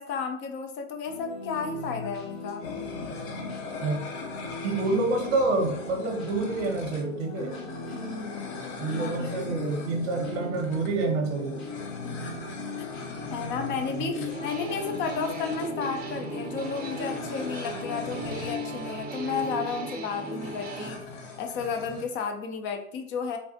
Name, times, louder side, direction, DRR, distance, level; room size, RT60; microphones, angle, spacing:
voice 1, 0.0-2.6 7.9-9.6 12.0-12.2 13.3-21.0 21.4-23.4, left 5 dB, 30° left, 5 dB, 0.4 m, -33 dB
sound 1, 1.1-19.9, left 3 dB, 80° left, 1.3 m, -39 dB
sound 2, 2.6-22.0, left 4 dB, 60° left, 0.8 m, -41 dB
voice 2, 4.6-7.6 8.8-11.6 13.9-14.3 15.7-15.8, right 3 dB, 60° right, 3 dB, 0.7 m, -28 dB
sound 3, 14.3-20.9, right 3 dB, 25° right, 0.6 m, -37 dB
3.3 x 2.4 x 2.6 m, 0.70 s
hypercardioid pair, 105°, 39 cm